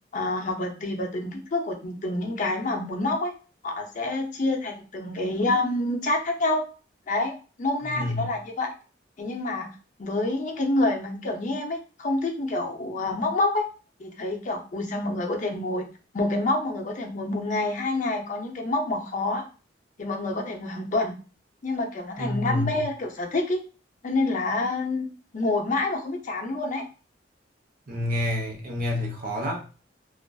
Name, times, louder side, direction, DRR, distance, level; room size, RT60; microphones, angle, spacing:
voice 1, 0.1-3.3 3.6-6.6 7.1-7.3 7.6-8.7 9.2-9.7 10.0-13.6 14.0-15.8 16.1-19.4 20.0-21.2 21.6-23.6 24.0-25.1 25.3-26.8, left 2 dB, 45° left, 3 dB, 0.5 m, -27 dB
voice 2, 7.9-8.3 22.2-22.8 27.9-29.7, left 1 dB, 50° right, 0 dB, 0.7 m, -28 dB
2.4 x 2.3 x 2.2 m, 0.35 s
head